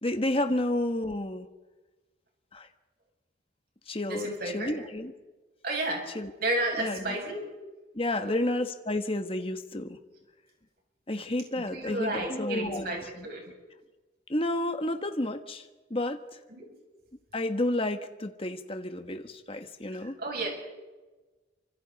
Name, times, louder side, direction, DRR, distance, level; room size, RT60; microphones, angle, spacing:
voice 1, 0.0-1.5 2.5-2.7 3.9-5.1 6.1-6.3 6.8-7.2 7.9-10.0 11.1-13.3 14.3-16.4 17.3-20.2, left 1 dB, 30° left, 7 dB, 1.4 m, -31 dB
voice 2, 4.1-4.8 5.6-6.0 6.4-7.4 8.2-8.3 11.6-13.4 16.5-16.6 20.2-20.5, right 2 dB, 50° right, 0 dB, 7.2 m, -32 dB
28.5 x 25.5 x 4.2 m, 1.2 s
head